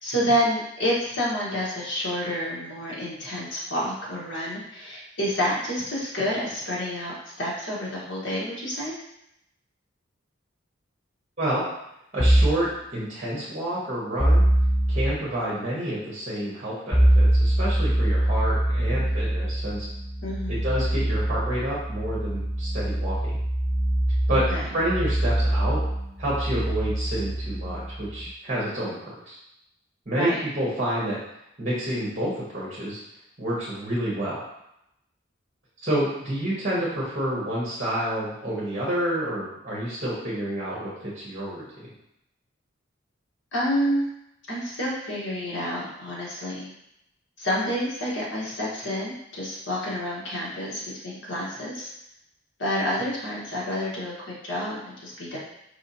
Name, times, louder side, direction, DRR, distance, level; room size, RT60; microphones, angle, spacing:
voice 1, 0.0-8.9 20.2-20.6 24.3-24.7 30.1-30.4 43.5-44.1 44.5-46.7 47.4-51.9 52.6-55.4, equal, 65° left, -5 dB, 1.4 m, -29 dB
voice 2, 12.1-14.4 14.9-19.9 20.5-23.4 24.3-24.4 24.7-25.8 26.2-29.4 30.1-31.2 31.6-33.0 33.4-34.4 35.8-41.6, right 1 dB, 35° right, -7 dB, 1.2 m, -29 dB
sound 1, 12.2-12.6 14.2-15.1 16.9-28.3, right 1 dB, 5° left, 0.4 m, -23 dB
4.8 x 3.4 x 2.8 m, 0.81 s
head